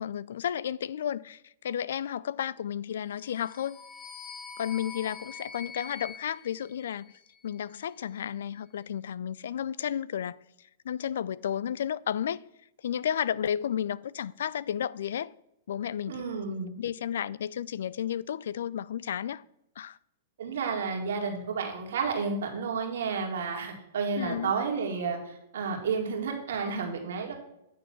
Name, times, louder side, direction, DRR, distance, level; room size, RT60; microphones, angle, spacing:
voice 1, 0.0-3.8 4.6-7.1 7.4-10.4 10.8-12.4 12.8-15.3 15.7-16.2 16.8-19.4 19.8-20.0 24.2-24.5, left 9 dB, 75° left, 0.3 m, -32 dB
sound 1, 3.2-7.5, left 5 dB, 25° left, 0.8 m, -45 dB
voice 2, 16.1-16.7 20.4-27.3, right 5 dB, 75° right, 2.1 m, -31 dB
9.1 x 3.9 x 7.2 m
hypercardioid pair, 125°, 0 cm